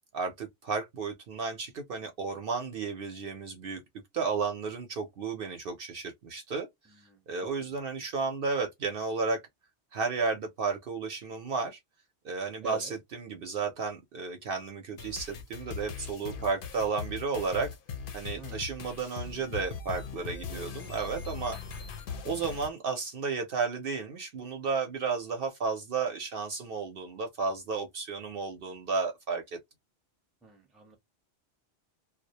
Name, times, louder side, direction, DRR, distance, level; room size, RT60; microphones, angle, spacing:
voice 1, 0.1-3.8 4.1-6.7 7.3-9.4 9.9-11.8 12.2-17.7 18.1-21.6 22.2-29.6, right 4 dB, 60° right, 0.7 m, -33 dB
voice 2, 6.9-7.2 7.6-7.8 12.6-12.9 18.4-18.6 30.4-31.0, right 3 dB, ahead, 0.7 m, -47 dB
sound 1, 15.0-22.7, left 6 dB, 55° left, 0.7 m, -40 dB
2.3 x 2.1 x 2.7 m
omnidirectional pair, 1.2 m